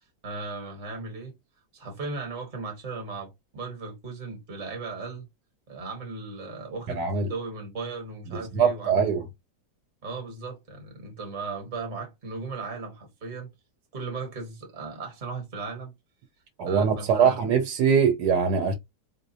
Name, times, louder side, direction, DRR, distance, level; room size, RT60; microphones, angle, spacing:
voice 1, 0.2-1.3 1.7-5.2 5.7-9.1 10.0-13.5 13.9-15.9 16.6-17.4, right 4 dB, 30° right, 1.1 m, -37 dB
voice 2, 6.9-7.3 8.5-9.2 16.6-18.7, right 6 dB, 80° right, 1.3 m, -22 dB
3.8 x 2.6 x 2.7 m
omnidirectional pair, 1.8 m